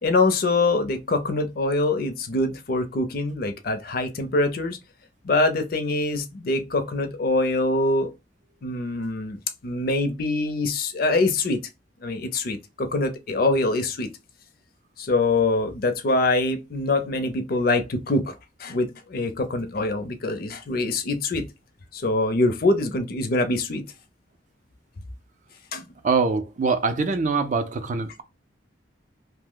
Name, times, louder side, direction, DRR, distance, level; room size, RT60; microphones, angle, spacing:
voice 1, 0.0-4.8 5.2-8.1 8.6-9.4 9.6-11.6 12.0-14.1 15.0-18.3 18.6-21.5 21.9-23.9 25.7-25.8, left 2 dB, 50° left, 0.5 m, -24 dB
voice 2, 26.0-28.2, right 4 dB, 40° right, 0.4 m, -23 dB
2.8 x 2.0 x 3.6 m
head